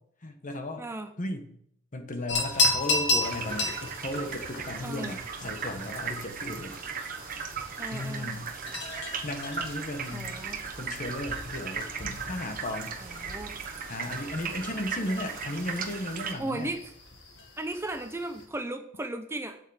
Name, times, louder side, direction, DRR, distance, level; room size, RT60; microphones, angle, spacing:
voice 1, 0.2-0.8 1.2-1.5 1.9-3.8 4.0-6.8 7.9-8.5 9.2-10.4 10.8-13.0 13.9-16.7, left 1 dB, 40° left, 6 dB, 1.2 m, -35 dB
voice 2, 0.8-1.1 4.8-5.2 7.8-8.3 10.1-10.6 13.0-13.5 16.4-16.8 17.6-19.6, right 2 dB, 15° right, 7 dB, 0.7 m, -35 dB
sound 1, 2.3-18.5, left 2 dB, 60° left, 2.1 m, -35 dB
sound 2, 3.2-16.3, right 6 dB, 45° right, 1.1 m, -37 dB
8.3 x 6.6 x 7.2 m, 0.69 s
head